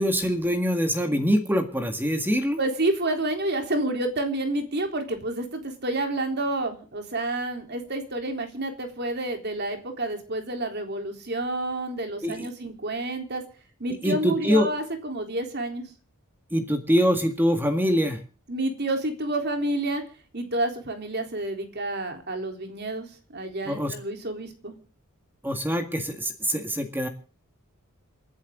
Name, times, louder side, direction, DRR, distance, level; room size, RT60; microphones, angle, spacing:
voice 1, 0.0-2.6 12.2-12.5 14.0-14.7 16.5-18.2 23.7-23.9 25.4-27.1, equal, 10° right, 6 dB, 1.9 m, -24 dB
voice 2, 2.6-13.4 13.8-15.9 18.5-20.0 20.3-23.1 23.3-24.8, right 2 dB, 50° right, 5 dB, 3.8 m, -29 dB
28.5 x 11.0 x 3.8 m, 0.39 s
head